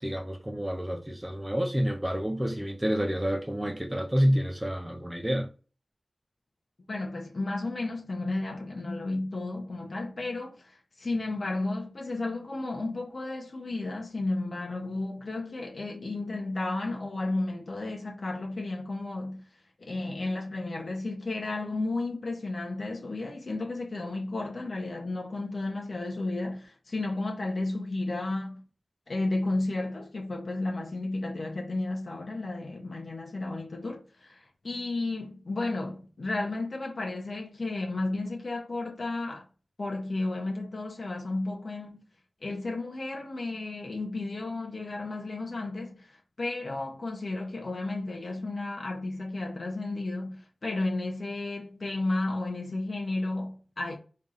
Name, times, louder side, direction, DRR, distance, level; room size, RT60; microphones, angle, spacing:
voice 1, 0.0-5.5, equal, 10° right, 0.8 m, -28 dB
voice 2, 6.9-19.5 19.8-28.6 29.1-39.5 39.8-42.0 42.4-54.0, left 2 dB, 60° left, 1.1 m, -33 dB
3.6 x 3.2 x 4.0 m
wide cardioid pair, 65°, 0 cm